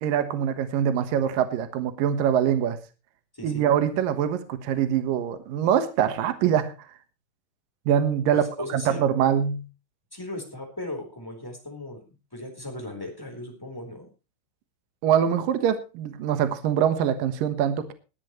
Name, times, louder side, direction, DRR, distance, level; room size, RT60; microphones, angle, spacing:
voice 1, 0.0-2.8 3.4-6.7 7.9-8.5 8.7-9.6 15.0-17.9, right 9 dB, 70° right, 10 dB, 2.1 m, -24 dB
voice 2, 3.3-3.6 8.3-9.0 10.1-12.0 12.3-14.1, left 2 dB, 5° left, 2 dB, 3.1 m, -37 dB
20.5 x 10.5 x 3.1 m, 0.31 s
omnidirectional pair, 5.8 m